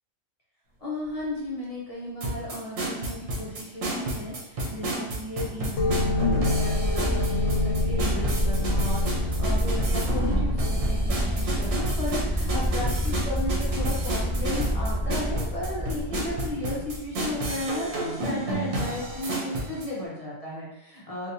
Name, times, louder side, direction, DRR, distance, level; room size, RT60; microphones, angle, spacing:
voice 1, 0.8-21.3, left 1 dB, 35° left, -6 dB, 0.6 m, -34 dB
sound 1, 2.2-19.9, right 1 dB, 70° right, 1.2 m, -31 dB
sound 2, 5.8-13.1, left 3 dB, 70° left, 0.9 m, -31 dB
sound 3, 5.8-17.8 19.0-19.2, equal, 30° right, 1.3 m, -28 dB
4.1 x 2.6 x 2.6 m, 0.88 s
omnidirectional pair, 1.4 m